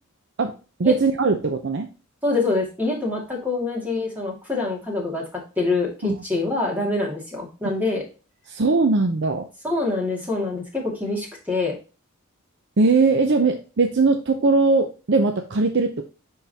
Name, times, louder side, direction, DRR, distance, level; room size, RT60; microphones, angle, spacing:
voice 1, 0.8-1.9 6.0-6.2 8.5-9.5 12.8-16.0, right 3 dB, 50° right, 5 dB, 0.6 m, -20 dB
voice 2, 2.2-8.0 9.6-11.7, left 3 dB, 10° right, -2 dB, 2.2 m, -25 dB
10.0 x 3.7 x 2.8 m, 0.34 s
head